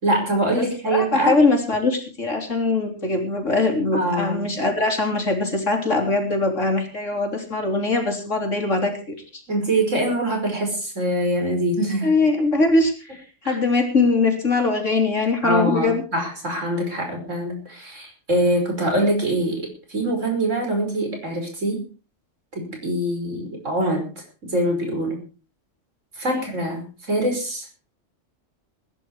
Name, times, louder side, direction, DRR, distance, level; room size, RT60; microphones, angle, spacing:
voice 1, 0.0-1.4 3.9-4.5 9.5-12.1 13.4-13.6 15.4-21.8 22.6-24.1 24.4-25.2 26.2-27.7, right 1 dB, 85° right, 2 dB, 5.8 m, -24 dB
voice 2, 0.6-9.4 12.0-16.0 26.3-26.4, left 3 dB, 80° left, 4 dB, 3.8 m, -22 dB
20.5 x 10.5 x 4.7 m, 0.35 s
omnidirectional pair, 1.3 m